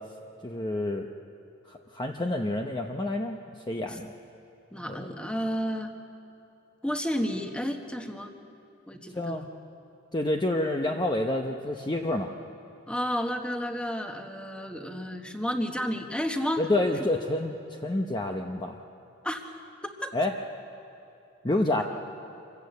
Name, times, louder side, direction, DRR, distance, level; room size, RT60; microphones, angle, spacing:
voice 1, 0.4-1.1 1.7-3.4 3.7-4.1 4.9-5.1 9.1-9.5 10.1-12.3 16.6-18.8 20.1-20.3 21.4-21.8, left 1 dB, 20° left, 2 dB, 0.8 m, -28 dB
voice 2, 4.7-5.9 6.8-8.3 8.9-9.4 12.9-16.6 19.2-19.4 19.8-20.1, equal, 5° left, 5 dB, 1.3 m, -31 dB
26.5 x 15.0 x 8.2 m, 2.8 s
head